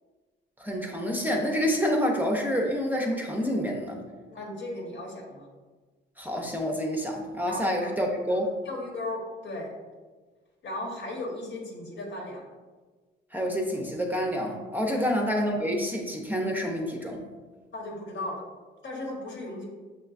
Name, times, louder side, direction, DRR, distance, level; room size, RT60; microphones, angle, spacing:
voice 1, 0.6-4.0 6.2-8.5 13.3-17.2, equal, 10° right, 1 dB, 0.5 m, -28 dB
voice 2, 4.3-5.5 7.5-7.9 8.3-9.7 10.6-12.4 14.9-15.0 17.7-18.4 18.8-19.7, left 1 dB, 70° left, -1 dB, 1.1 m, -36 dB
6.0 x 2.2 x 2.4 m, 1.4 s
cardioid pair, 90°, 20 cm